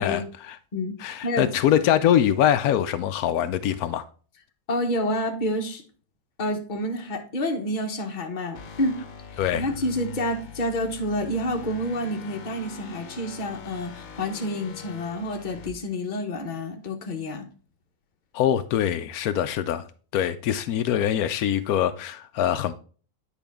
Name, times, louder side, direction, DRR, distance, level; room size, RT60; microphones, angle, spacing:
voice 1, 0.0-0.6 1.0-4.0 9.4-9.6 18.3-19.9 20.1-22.7, left 10 dB, 80° left, 1.0 m, -23 dB
voice 2, 4.7-5.8 6.4-9.0 9.5-17.5, left 1 dB, 35° left, 1.1 m, -28 dB
sound 1, 8.5-15.7, left 5 dB, 55° left, 1.2 m, -42 dB
9.0 x 4.7 x 3.5 m
omnidirectional pair, 1.5 m